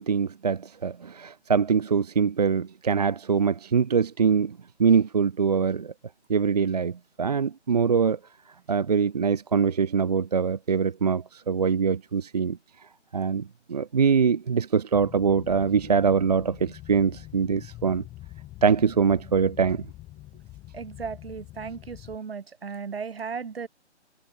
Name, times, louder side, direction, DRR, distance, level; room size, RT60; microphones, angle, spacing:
voice 1, 0.0-5.9 6.3-8.2 8.7-12.6 13.1-18.0 18.6-19.8, right 6 dB, 35° right, 0.7 m, -23 dB
sound 1, 14.9-22.2, left 16 dB, 15° left, 5.7 m, -45 dB
voice 2, 20.7-23.7, right 6 dB, 60° right, 1.9 m, -36 dB
figure-of-eight pair, 155°, 35 cm